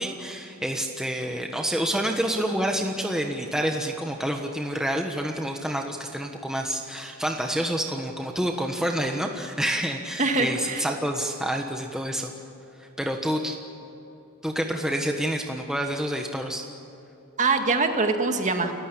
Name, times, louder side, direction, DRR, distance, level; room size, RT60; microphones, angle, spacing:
voice 1, 0.0-12.3 13.0-13.6 14.4-16.7, equal, 5° right, 2 dB, 1.3 m, -28 dB
voice 2, 10.2-10.8 17.4-18.7, right 3 dB, 35° right, 5 dB, 2.0 m, -23 dB
29.0 x 15.0 x 8.7 m, 2.9 s
head